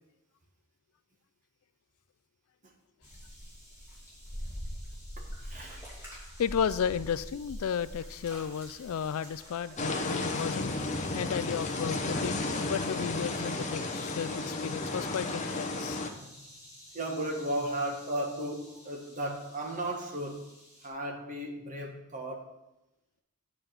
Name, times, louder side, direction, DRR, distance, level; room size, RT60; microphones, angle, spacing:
sound 1, 3.0-20.9, equal, 10° right, 2.7 m, -47 dB
voice 1, 5.2-5.8 14.2-14.9 15.7-15.8 16.1-16.6 16.9-20.5 20.8-22.5, right 1 dB, 35° right, 0 dB, 1.5 m, -36 dB
voice 2, 6.1-10.7 11.1-16.0, left 7 dB, 75° left, 16 dB, 0.4 m, -33 dB
sound 2, 9.8-16.1, left 2 dB, 30° left, 0.7 m, -33 dB
9.0 x 5.0 x 5.9 m, 0.94 s
head